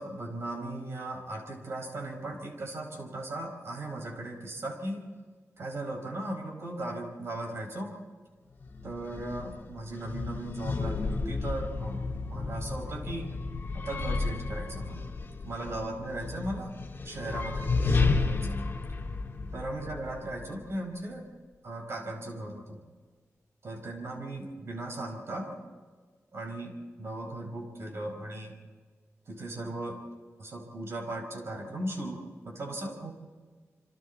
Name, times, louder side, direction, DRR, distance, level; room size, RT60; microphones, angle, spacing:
voice 1, 0.0-5.1 5.6-7.9 8.8-12.0 12.3-13.3 13.7-15.0 15.4-16.7 17.1-18.6 19.5-21.3 21.6-22.8 23.6-25.6 26.3-28.6 29.3-30.0 30.4-33.1, right 1 dB, 50° right, 3 dB, 5.1 m, -37 dB
sound 1, 8.6-20.7, left 3 dB, 40° left, 1.7 m, -32 dB
28.5 x 25.0 x 4.3 m, 1.5 s
wide cardioid pair, 170°, 5 cm